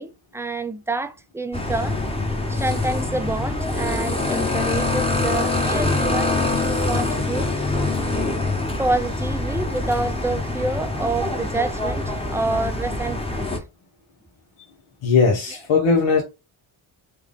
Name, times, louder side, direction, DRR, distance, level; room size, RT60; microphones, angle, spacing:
voice 1, 0.0-2.0 2.5-6.4 6.6-7.6 8.8-13.5 15.5-15.6, right 2 dB, 5° right, 0.3 m, -27 dB
sound 1, 1.5-13.6, left 2 dB, 10° left, 0.9 m, -24 dB
voice 2, 15.0-16.2, left 4 dB, 85° left, 1.0 m, -18 dB
3.5 x 2.3 x 3.6 m
cardioid pair, 50°, 50 cm